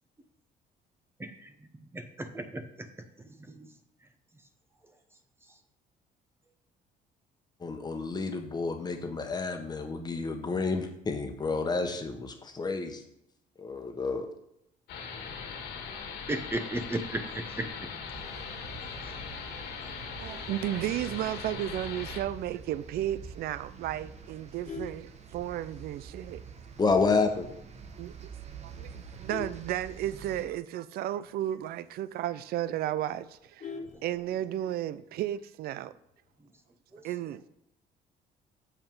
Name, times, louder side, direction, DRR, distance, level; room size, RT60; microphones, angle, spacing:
voice 1, 1.2-2.9 3.2-3.3 16.3-17.7 19.0-19.2 33.8-34.0 36.9-37.0, right 1 dB, 15° right, 0.9 m, -36 dB
voice 2, 7.6-13.0 13.6-14.3 26.8-27.5, left 4 dB, 25° left, 1.2 m, -30 dB
sound 1, 14.9-22.2, left 6 dB, 80° left, 1.7 m, -40 dB
sound 2, 18.1-30.5, right 6 dB, 40° right, 1.0 m, -47 dB
voice 3, 20.2-26.4 28.0-28.1 28.6-33.7 34.0-35.9 37.0-37.4, right 12 dB, 65° right, 0.5 m, -33 dB
Vehicle horn car horn honking, 24.4-25.9 26.3-26.6 26.9-27.0 27.4-27.5 27.8-28.2 28.7-30.5 30.9-31.0 31.3-31.4 31.8-31.9 32.3-32.4 32.6-34.7 35.8-36.3, left 5 dB, 45° left, 0.8 m, -44 dB
7.3 x 5.5 x 5.4 m
cardioid pair, 110°, 17 cm